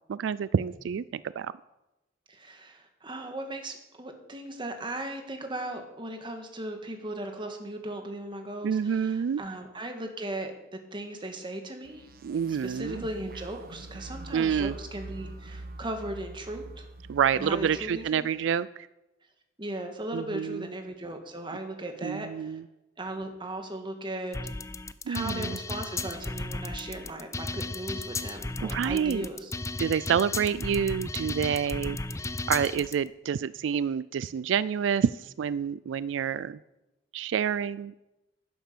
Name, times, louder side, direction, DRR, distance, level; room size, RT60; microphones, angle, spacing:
voice 1, 0.1-1.5 8.6-9.4 12.2-13.0 14.3-14.7 17.1-18.9 20.1-20.7 22.0-22.6 25.1-25.6 28.6-29.3 29.8-32.0 32.5-36.6 37.1-37.9, right 7 dB, 85° right, 17 dB, 0.3 m, -28 dB
voice 2, 2.3-12.1 12.5-16.8 17.3-18.3 19.6-22.6 23.0-24.4 25.1-29.5, right 1 dB, 25° right, 5 dB, 1.7 m, -37 dB
sound 1, 11.8-18.1, right 2 dB, 55° right, 0.9 m, -44 dB
sound 2, 24.3-32.9, left 2 dB, 15° left, 0.5 m, -35 dB
11.5 x 9.4 x 6.7 m, 0.97 s
head